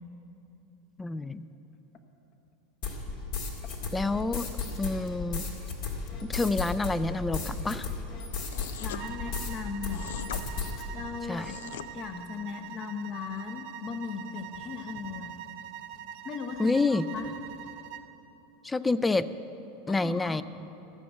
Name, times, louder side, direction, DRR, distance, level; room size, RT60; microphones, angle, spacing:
voice 1, 1.0-1.5 3.9-4.5 4.8-5.5 6.2-7.9 11.3-11.5 16.6-17.1 18.6-19.3 19.9-20.4, left 3 dB, 15° left, 14 dB, 0.4 m, -28 dB
sound 1, 2.8-9.6 9.8-10.8, left 4 dB, 60° left, 1.9 m, -34 dB
sound 2, 8.5-9.0 9.9-10.4 11.3-11.9, left 10 dB, 75° left, 0.4 m, -41 dB
voice 2, 8.8-10.3 10.9-15.3 16.2-17.3 17.6-17.7 19.9-20.4, left 6 dB, 45° left, 7 dB, 1.1 m, -38 dB
sound 3, 9.0-18.1, right 11 dB, 55° right, 0.6 m, -44 dB
13.5 x 6.2 x 7.9 m, 3.0 s
hypercardioid pair, 95°, 0 cm